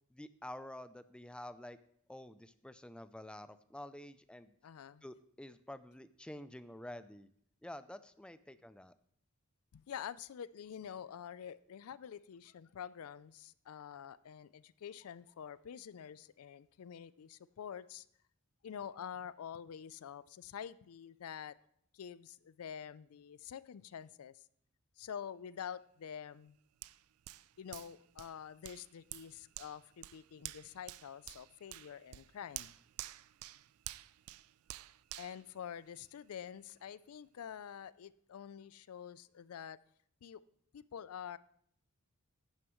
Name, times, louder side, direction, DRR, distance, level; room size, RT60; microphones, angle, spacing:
voice 1, 0.1-1.8 2.1-4.6 5.0-7.3 7.6-8.9, left 1 dB, 5° left, 13 dB, 0.4 m, -49 dB
voice 2, 4.6-5.0 9.7-18.1 18.6-21.6 21.9-24.4 25.0-26.6 27.6-32.7 35.2-39.8 40.2-40.4 40.7-41.4, left 8 dB, 85° left, 18 dB, 0.4 m, -47 dB
Hands, 26.8-36.3 36.8-36.9, right 16 dB, 90° right, 0.3 m, -50 dB
11.0 x 9.5 x 3.1 m, 0.67 s
head